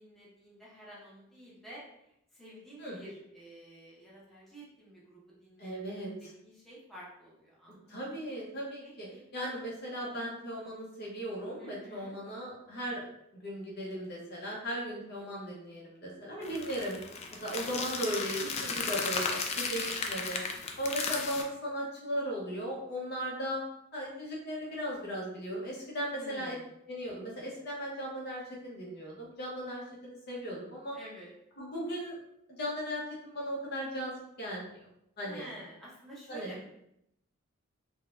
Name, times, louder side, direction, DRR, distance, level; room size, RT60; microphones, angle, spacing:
voice 1, 0.0-1.8 2.3-7.9 8.8-9.2 11.6-12.2 17.3-17.9 19.7-20.1 26.1-26.7 30.9-31.3 35.2-36.6, equal, ahead, -7 dB, 0.7 m, -50 dB
voice 2, 5.6-6.3 7.9-13.0 13.3-17.0 17.4-20.4 20.8-23.6 23.9-26.5 26.9-31.0 31.6-32.2 32.6-34.9 35.2-35.5 36.3-36.5, equal, 55° left, -3 dB, 0.9 m, -37 dB
sound 1, 16.4-21.4, left 4 dB, 30° left, 0.3 m, -35 dB
3.8 x 2.2 x 2.5 m, 0.78 s
head